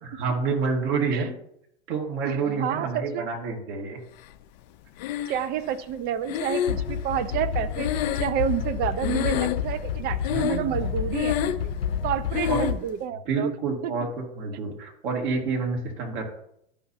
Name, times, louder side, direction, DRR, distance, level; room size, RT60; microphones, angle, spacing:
voice 1, 0.2-1.3 1.9-4.0 10.2-10.9 12.5-12.6 13.3-16.2, right 4 dB, 55° right, 0 dB, 2.4 m, -28 dB
voice 2, 2.2-3.3 5.3-11.7 12.0-13.5 13.8-14.1, right 10 dB, 30° right, 11 dB, 0.6 m, -29 dB
Breathing, 5.0-5.7 6.3-8.7 9.0-9.8 10.2-10.8 11.1-11.7 12.3-12.8, left 10 dB, 45° left, 0.5 m, -28 dB
sound 1, 6.7-12.7, left 8 dB, 65° left, 1.0 m, -30 dB
11.5 x 5.6 x 2.8 m, 0.76 s
figure-of-eight pair, 90°, 30 cm